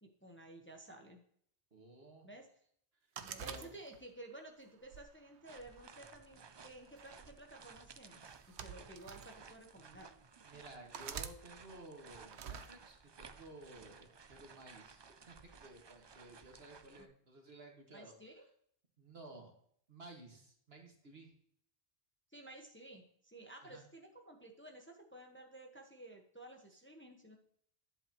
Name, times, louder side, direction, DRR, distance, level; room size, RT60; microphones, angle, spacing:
voice 1, 0.0-1.2 2.2-2.5 3.2-10.2 17.0-17.1 17.9-18.5 22.3-27.4, right 1 dB, 10° left, 2 dB, 1.1 m, -54 dB
voice 2, 1.7-2.3 3.4-3.8 10.5-18.5 19.0-19.5 19.9-21.3 23.6-23.8 26.7-26.8, right 2 dB, 65° right, 1 dB, 2.1 m, -55 dB
sound 1, 3.2-4.2 4.8-6.0 7.0-7.2 8.2-9.3 10.0-10.1 10.9-11.4 12.3-12.7, right 8 dB, 85° right, 1.0 m, -46 dB
sound 2, 5.5-17.1, right 5 dB, 45° right, 0.3 m, -57 dB
11.0 x 7.7 x 3.0 m, 0.64 s
omnidirectional pair, 1.1 m